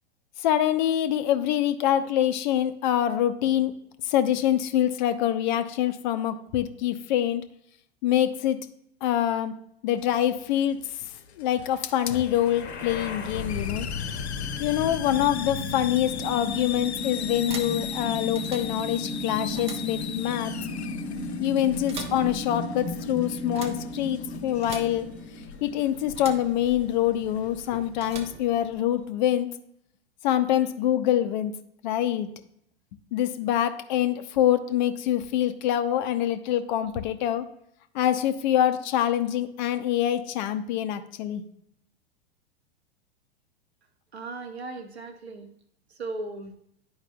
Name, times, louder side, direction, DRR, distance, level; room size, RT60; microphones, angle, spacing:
voice 1, 0.4-3.7 4.0-7.4 8.0-8.7 9.0-9.5 9.8-10.8 11.4-13.9 14.6-20.5 21.4-25.1 25.6-29.5 30.2-31.6 31.8-32.3 33.1-37.5 37.9-41.4, left 11 dB, 45° left, 10 dB, 0.6 m, -25 dB
Hiss, 10.0-27.9, left 8 dB, 85° left, 0.5 m, -40 dB
sound 1, 12.2-26.2, left 3 dB, 30° left, 1.0 m, -35 dB
sound 2, 15.9-29.2, right 5 dB, 20° right, 0.6 m, -44 dB
voice 2, 44.1-45.5 45.9-46.5, right 2 dB, 80° right, 6 dB, 1.0 m, -37 dB
10.5 x 4.8 x 2.3 m, 0.72 s
figure-of-eight pair, 95°, 32 cm